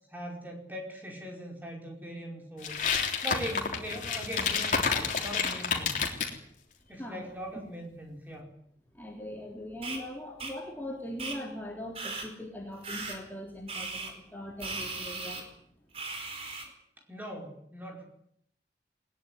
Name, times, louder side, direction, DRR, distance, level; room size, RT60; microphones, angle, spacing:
voice 1, 0.1-2.8 3.2-6.1 6.9-8.5 17.1-18.1, equal, 10° right, 1 dB, 4.9 m, -40 dB
sound 1, 2.6-6.3, left 5 dB, 45° left, 3.5 m, -29 dB
voice 2, 8.9-15.5, left 1 dB, 10° left, -1 dB, 3.6 m, -41 dB
sound 2, 9.8-10.0 10.4-10.5 11.2-11.4 11.9-12.3 12.8-13.2 13.7-14.1 14.6-15.4 15.9-16.6, right 3 dB, 35° right, 4.9 m, -37 dB
20.5 x 20.0 x 9.5 m, 0.70 s
head